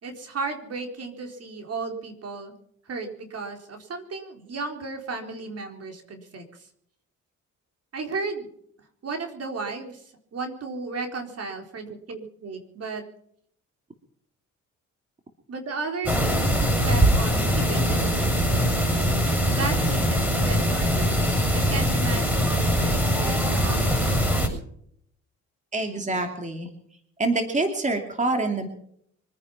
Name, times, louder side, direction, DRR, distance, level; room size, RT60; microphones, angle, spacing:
voice 1, 0.0-2.5 2.9-6.7 7.9-8.5 9.0-13.0 15.5-16.5 16.8-18.4 19.5-21.2 21.5-24.3, right 4 dB, 55° right, 4 dB, 4.2 m, -34 dB
sound 1, 16.0-24.5, equal, 5° right, 7.0 m, -22 dB
voice 2, 25.7-26.7 27.2-28.7, right 2 dB, 25° right, 5 dB, 2.7 m, -26 dB
25.0 x 9.8 x 5.8 m, 0.67 s
cardioid pair, 90°, 30 cm